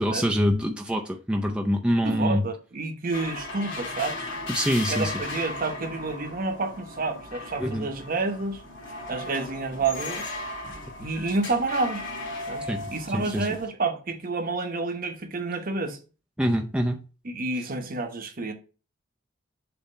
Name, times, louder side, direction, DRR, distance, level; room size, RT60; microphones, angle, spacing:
voice 1, 0.0-2.4 4.5-5.1 7.6-7.9 12.7-12.8 13.1-13.5 16.4-17.0 17.6-17.7, equal, 5° right, 0.5 m, -25 dB
voice 2, 2.0-4.3 4.9-8.6 9.1-10.3 11.0-12.0 12.5-16.0 17.2-18.5, right 3 dB, 45° right, 1.0 m, -29 dB
sound 1, 3.1-13.7, left 2 dB, 65° left, 3.0 m, -36 dB
6.9 x 2.8 x 5.5 m
head